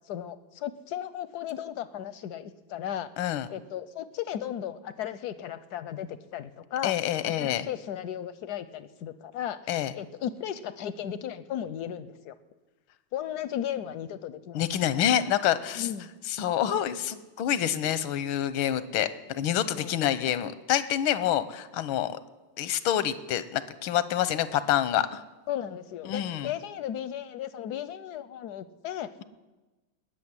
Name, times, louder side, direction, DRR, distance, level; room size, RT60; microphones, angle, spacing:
voice 1, 0.1-3.1 3.5-6.9 7.2-9.6 9.9-12.3 13.1-14.6 15.8-16.1 19.7-20.0 25.5-29.2, left 10 dB, 70° left, 14 dB, 1.0 m, -35 dB
voice 2, 3.2-3.5 6.8-7.7 9.7-9.9 14.5-15.9 16.3-22.2 22.6-25.2 26.1-26.5, left 11 dB, 90° left, 15 dB, 1.6 m, -27 dB
19.5 x 6.7 x 9.6 m, 1.2 s
omnidirectional pair, 2.2 m